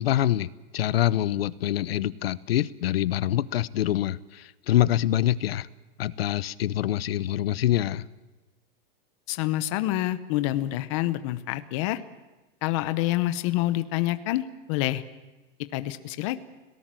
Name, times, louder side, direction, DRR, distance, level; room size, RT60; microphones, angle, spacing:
voice 1, 0.0-5.7 6.0-8.1, left 12 dB, 80° left, 18 dB, 0.9 m, -25 dB
voice 2, 9.3-12.0 12.6-15.0 15.7-16.4, left 15 dB, 30° left, 12 dB, 0.9 m, -27 dB
29.5 x 18.0 x 7.6 m, 1.1 s
supercardioid pair, 175°, 30 cm